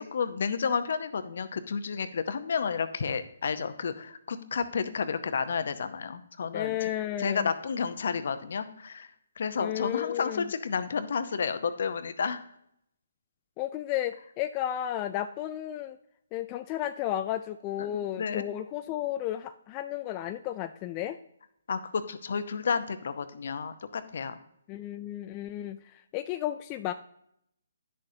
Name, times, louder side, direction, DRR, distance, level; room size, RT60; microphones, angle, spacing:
voice 1, 0.0-6.9 7.2-12.4 17.8-17.9 18.2-18.4 21.7-24.4, left 6 dB, 60° left, 11 dB, 0.8 m, -31 dB
voice 2, 6.5-7.5 9.6-10.5 13.6-16.0 16.3-21.2 24.7-26.9, left 12 dB, 25° left, 8 dB, 0.3 m, -33 dB
10.5 x 6.5 x 2.8 m, 0.74 s
hypercardioid pair, 150°, 0 cm